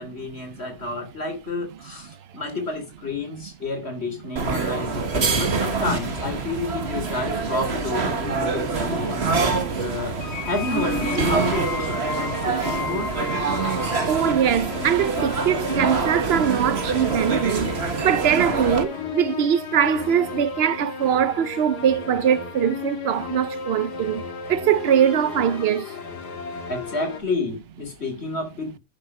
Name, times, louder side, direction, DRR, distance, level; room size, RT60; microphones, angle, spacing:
voice 1, 0.0-10.1 10.4-13.1 26.7-28.8, left 2 dB, 35° left, 3.3 m, -30 dB
sound 1, 4.4-18.8, right 4 dB, 35° right, 1.6 m, -26 dB
sound 2, 10.2-27.2, left 5 dB, 60° left, 2.1 m, -34 dB
voice 2, 14.1-17.7 18.0-25.9, right 9 dB, 65° right, 0.6 m, -22 dB
10.0 x 7.0 x 5.9 m
omnidirectional pair, 2.0 m